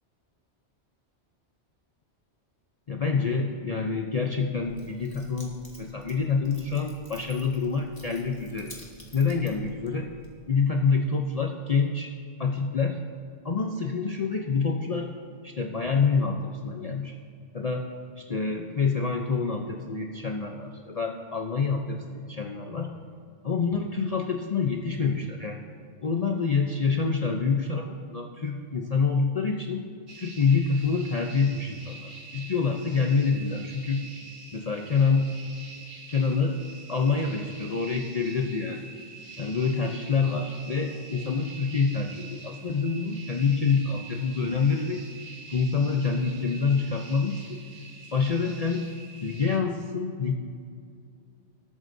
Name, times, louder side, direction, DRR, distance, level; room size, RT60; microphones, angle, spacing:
voice 1, 2.9-8.8 9.1-10.1 10.5-12.1 12.4-13.0 13.4-15.1 15.4-17.1 17.5-17.9 18.2-22.9 23.4-25.6 26.0-29.9 30.2-34.0 34.5-35.3 36.1-36.6 36.9-38.9 39.4-45.0 45.5-47.6 48.1-48.9 49.2-50.4, left 5 dB, 40° left, 2 dB, 0.7 m, -27 dB
Keys jangling, 4.5-10.5, equal, 20° left, 1.7 m, -50 dB
sound 1, 30.1-49.6, right 3 dB, 45° right, 1.4 m, -45 dB
20.0 x 8.9 x 2.7 m, 2.3 s
omnidirectional pair, 1.2 m